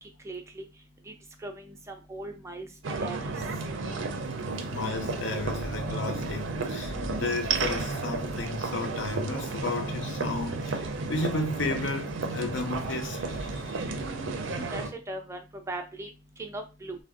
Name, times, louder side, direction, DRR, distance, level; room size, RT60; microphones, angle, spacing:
voice 1, 0.2-0.7 1.1-1.2 1.4-2.7 3.0-3.3 13.9-16.1 16.4-17.0, right 2 dB, 15° right, 0.3 m, -39 dB
sound 1, 2.8-14.9, right 3 dB, 75° right, 0.5 m, -33 dB
voice 2, 4.7-13.9, left 2 dB, 65° left, 0.6 m, -33 dB
3.4 x 2.1 x 2.4 m
head